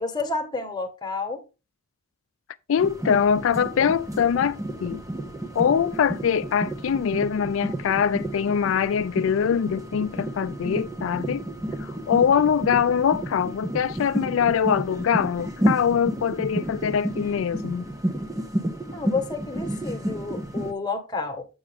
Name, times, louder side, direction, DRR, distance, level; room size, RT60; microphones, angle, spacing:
voice 1, 0.0-1.4 18.9-21.5, left 3 dB, 20° left, 1.6 m, -30 dB
voice 2, 2.7-5.0 5.5-11.5 11.8-17.9, left 7 dB, 85° left, 0.4 m, -23 dB
sound 1, 2.8-20.7, right 1 dB, 15° right, 1.3 m, -31 dB
8.1 x 7.6 x 3.6 m
head